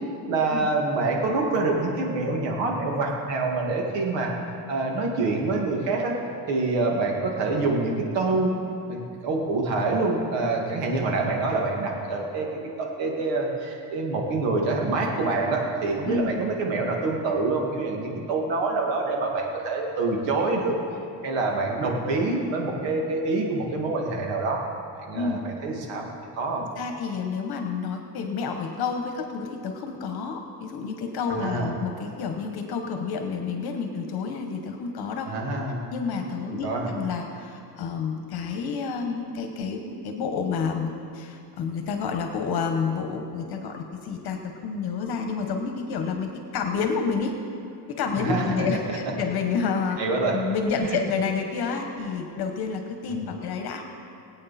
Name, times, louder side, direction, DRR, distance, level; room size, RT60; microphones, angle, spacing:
voice 1, 0.3-4.3 4.7-6.2 6.5-8.5 8.9-12.5 12.8-20.8 21.2-24.6 24.9-26.1 26.4-26.6 31.3-31.7 35.3-35.8 36.5-36.9 48.2-48.7 50.0-50.4 50.8-51.0, right 3 dB, 85° right, 0 dB, 2.3 m, -26 dB
voice 2, 16.0-16.4 25.1-25.5 26.6-35.3 35.9-47.4 47.9-50.0 50.3-53.8, left 5 dB, 60° left, 4 dB, 1.3 m, -29 dB
22.0 x 8.7 x 4.3 m, 2.6 s
cardioid pair, 135°, 43 cm